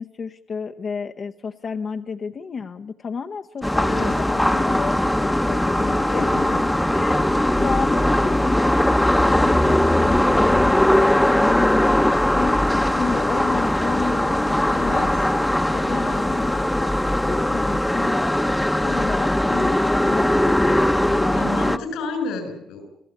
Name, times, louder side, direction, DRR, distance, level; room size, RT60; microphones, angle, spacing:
voice 1, 0.0-6.3 6.9-9.8 10.1-10.8 11.2-11.7 12.0-15.1 15.6-18.3 18.8-21.8, left 5 dB, 45° left, 5 dB, 0.9 m, -31 dB
sound 1, 3.6-21.8, left 1 dB, 5° left, 1.0 m, -20 dB
voice 2, 5.8-6.6 14.8-15.3 15.9-16.3 21.2-22.8, left 4 dB, 90° left, 9 dB, 6.5 m, -32 dB
27.5 x 15.0 x 8.5 m, 0.73 s
cardioid pair, 90°, 0 cm